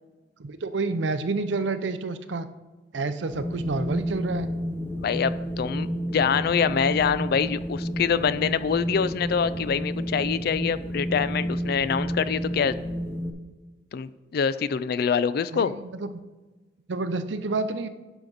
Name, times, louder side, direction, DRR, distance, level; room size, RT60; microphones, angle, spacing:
voice 1, 0.4-2.5 2.9-4.5 15.5-16.2 16.9-17.9, right 3 dB, 80° right, 11 dB, 0.6 m, -29 dB
Wind, 3.3-13.3, equal, 15° left, 0.6 m, -31 dB
voice 2, 5.0-12.8 13.9-15.8, left 6 dB, 55° left, 15 dB, 0.3 m, -25 dB
9.9 x 5.9 x 4.0 m, 1.2 s
head